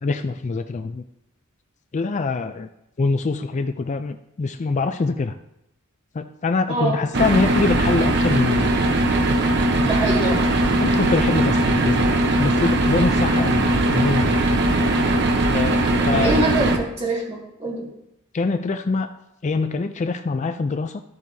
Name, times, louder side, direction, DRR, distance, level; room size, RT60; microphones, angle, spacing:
voice 1, 0.0-1.1 1.9-2.7 3.0-5.3 6.1-8.8 10.8-14.5 15.5-16.3 18.3-19.1 19.4-21.0, left 3 dB, 35° left, 8 dB, 0.4 m, -24 dB
voice 2, 6.7-7.0 9.8-10.6 16.1-17.9, right 2 dB, 30° right, -3 dB, 2.3 m, -24 dB
sound 1, 7.1-16.8, right 1 dB, 55° right, 0.9 m, -19 dB
13.5 x 7.3 x 2.7 m, 0.85 s
head